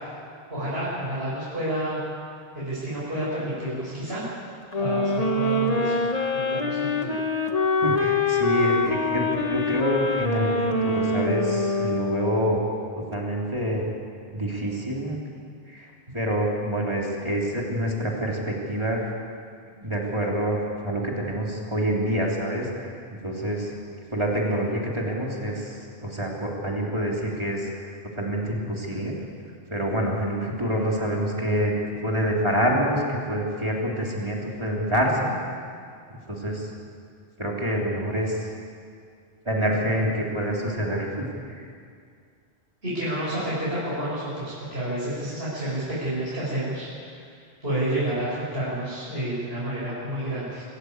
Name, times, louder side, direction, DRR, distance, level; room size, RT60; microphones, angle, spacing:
voice 1, 0.5-2.0 2.5-4.2 4.8-6.0 6.3-7.1 42.8-47.3 47.6-50.6, right 1 dB, 75° right, -10 dB, 7.4 m, -30 dB
sound 1, 4.7-12.7, left 2 dB, 40° left, 1.5 m, -25 dB
voice 2, 7.8-12.6 13.1-13.9 14.3-15.2 15.7-19.1 19.8-22.9 23.2-23.7 24.1-27.9 28.2-29.2 29.7-31.7 32.0-35.3 36.3-36.7 37.4-38.5 39.5-41.7, equal, 30° right, -3 dB, 3.7 m, -27 dB
26.0 x 14.5 x 8.3 m, 2.3 s
omnidirectional pair, 1.0 m